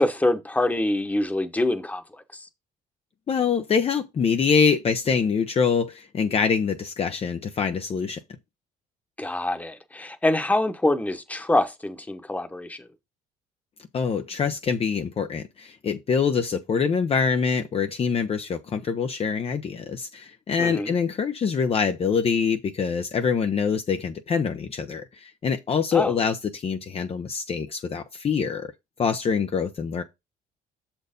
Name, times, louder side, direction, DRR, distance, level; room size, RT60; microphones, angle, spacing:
voice 1, 0.0-2.5 9.2-12.9 20.6-20.9 25.9-26.1, left 1 dB, 10° left, 1.2 m, -25 dB
voice 2, 3.3-8.2 13.9-28.7 29.0-30.0, left 6 dB, 35° left, 0.8 m, -25 dB
6.7 x 4.5 x 5.2 m
cardioid pair, 110°, 17 cm